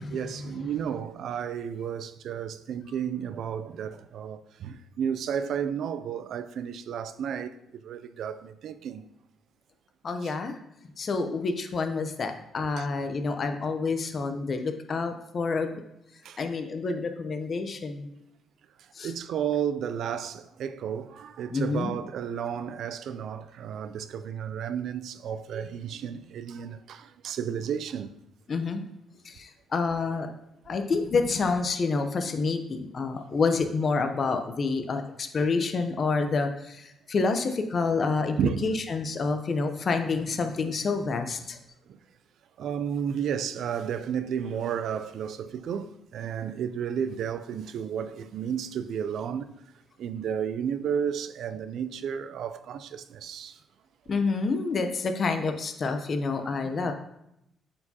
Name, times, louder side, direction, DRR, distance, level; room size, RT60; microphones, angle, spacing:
voice 1, 0.0-7.6 7.8-9.0 10.2-10.3 12.8-12.9 16.2-16.4 19.0-28.1 38.4-38.7 41.9-42.0 42.6-49.5 50.0-53.6, right 8 dB, 70° right, 0.4 m, -32 dB
voice 2, 10.0-10.5 11.0-15.7 16.4-18.1 19.0-19.1 21.5-21.9 28.5-28.8 29.2-30.3 30.7-41.6 54.1-56.9, left 4 dB, 45° left, 0.7 m, -28 dB
8.6 x 4.5 x 2.9 m
cardioid pair, 90°, 0 cm